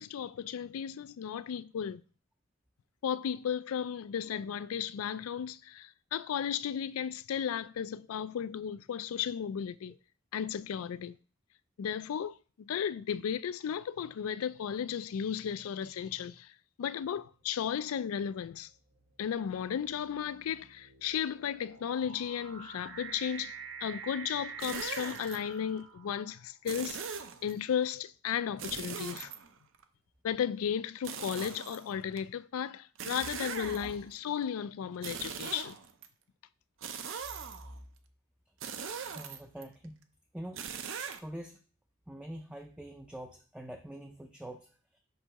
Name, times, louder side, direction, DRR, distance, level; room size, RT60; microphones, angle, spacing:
voice 1, 0.0-2.0 3.0-10.0 10.3-11.2 11.8-18.7 19.2-23.5 23.8-27.2 27.4-29.3 30.2-35.8, left 8 dB, 85° left, 0.3 m, -35 dB
sound 1, 17.0-17.4 18.3-26.5, right 6 dB, 80° right, 1.2 m, -47 dB
sound 2, 24.6-25.4 26.7-27.5 28.6-29.8 31.0-32.2 33.0-34.1 34.9-36.1 36.8-37.8 38.6-39.6 40.5-41.2, right 6 dB, 65° right, 0.6 m, -40 dB
voice 2, 39.1-40.0 40.3-40.6 41.2-41.6 42.1-45.0, right 1 dB, 5° right, 0.4 m, -45 dB
6.4 x 5.5 x 2.9 m
head